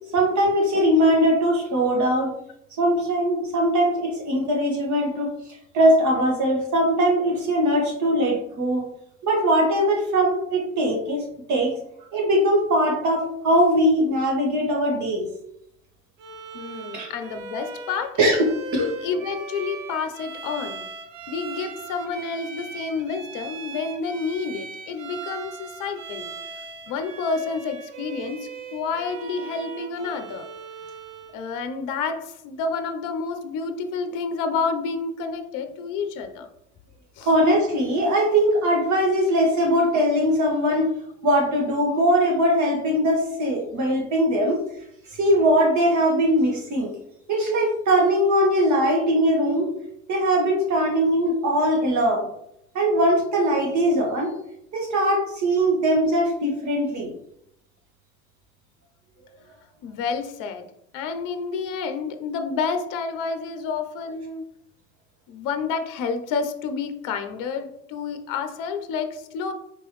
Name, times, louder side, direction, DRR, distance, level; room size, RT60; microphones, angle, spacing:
voice 1, 0.1-2.4 2.8-5.3 5.7-8.8 9.2-11.2 11.5-11.7 12.1-15.3 16.9-17.1 18.2-18.9 37.2-40.9 41.2-44.6 45.2-46.9 47.3-49.7 50.1-52.3 52.8-54.3 54.7-57.1, equal, 45° right, 0 dB, 1.6 m, -21 dB
Bowed string instrument, 16.2-31.4, right 5 dB, 80° right, 0.7 m, -39 dB
voice 2, 16.5-18.2 18.8-20.9 21.3-26.3 26.9-30.5 31.3-36.5 37.2-37.3 59.8-60.7 60.9-64.4 65.3-69.5, left 5 dB, 50° left, 8 dB, 0.7 m, -29 dB
4.5 x 3.0 x 3.1 m, 0.77 s
hypercardioid pair, 70°, 39 cm